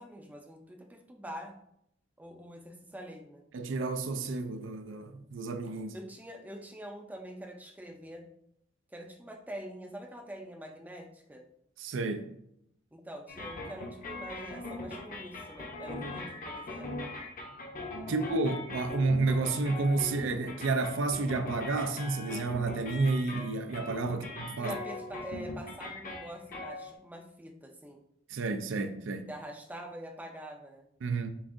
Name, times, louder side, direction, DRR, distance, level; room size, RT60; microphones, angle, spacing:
voice 1, 0.0-1.5 2.2-3.4 5.9-8.2 8.9-11.4 12.9-16.9 18.2-18.3 24.1-24.2 24.6-28.0 29.3-30.9, right 1 dB, 10° right, 0.4 m, -45 dB
voice 2, 3.5-6.0 11.8-12.3 18.1-24.8 28.3-29.3 31.0-31.3, right 3 dB, 75° right, 0.4 m, -31 dB
sound 1, 13.3-26.9, left 2 dB, 45° left, 0.7 m, -41 dB
6.9 x 2.5 x 2.5 m
head